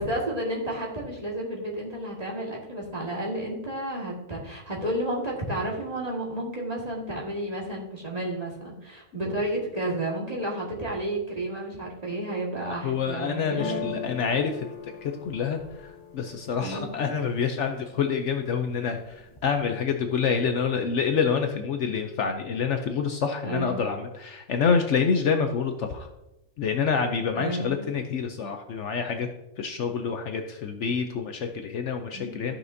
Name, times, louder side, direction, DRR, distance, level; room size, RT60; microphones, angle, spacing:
voice 1, 0.0-13.9 16.6-16.9 23.4-23.9 27.3-27.9 32.1-32.5, right 1 dB, 30° right, -3 dB, 1.8 m, -31 dB
voice 2, 12.6-14.7 15.0-26.1 26.6-29.3 29.6-32.5, left 6 dB, 65° left, 5 dB, 0.9 m, -27 dB
sound 1, 13.6-17.4 17.9-18.5 18.8-19.6, left 5 dB, 25° left, 0.9 m, -38 dB
13.5 x 5.8 x 2.7 m, 0.93 s
omnidirectional pair, 1.5 m